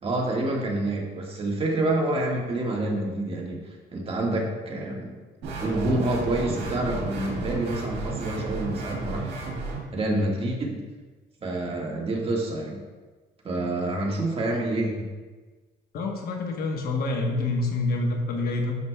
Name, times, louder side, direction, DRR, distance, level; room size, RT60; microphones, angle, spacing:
voice 1, 0.0-5.1 5.6-9.4 9.9-10.8 11.4-12.8 13.4-15.1, right 2 dB, 35° right, -1 dB, 1.6 m, -27 dB
sound 1, 5.4-9.8, right 3 dB, 90° right, 1.5 m, -33 dB
voice 2, 15.9-18.8, left 2 dB, 65° left, 1 dB, 1.1 m, -27 dB
11.0 x 6.1 x 2.2 m, 1.3 s
cardioid pair, 110°, 17 cm